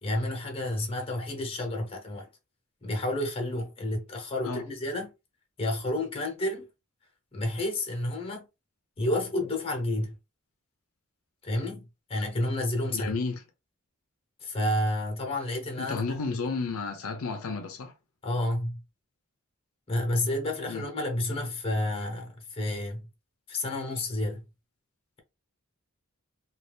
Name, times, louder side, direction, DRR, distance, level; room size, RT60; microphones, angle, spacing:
voice 1, 0.0-2.3 2.8-5.1 5.6-6.7 7.3-8.5 9.0-10.2 11.4-13.1 14.4-16.0 16.4-16.5 18.2-18.8 19.9-23.1 23.5-24.5, left 1 dB, 25° left, 0.9 m, -30 dB
voice 2, 12.9-13.4 15.8-17.9 20.7-20.8, left 4 dB, 80° left, 0.6 m, -32 dB
2.7 x 2.3 x 3.3 m
head